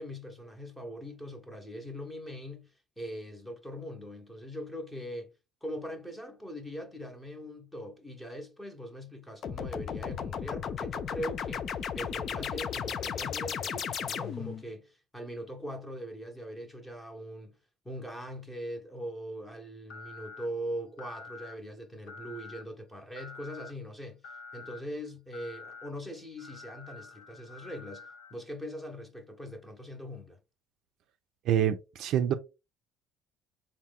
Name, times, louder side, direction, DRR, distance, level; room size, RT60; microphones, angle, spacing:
voice 1, 0.0-5.3 5.6-17.6 17.8-30.4, equal, 5° left, 0.9 m, -41 dB
sound 1, 9.4-14.6, left 7 dB, 40° left, 0.3 m, -35 dB
sound 2, 19.9-20.5 21.0-21.5 22.1-22.6 23.2-23.7 24.2-24.8 25.3-25.9 26.4-28.3, left 4 dB, 75° left, 1.0 m, -47 dB
voice 2, 31.5-32.3, right 10 dB, 55° right, 0.4 m, -26 dB
4.3 x 2.2 x 3.7 m
cardioid pair, 150°, 0 cm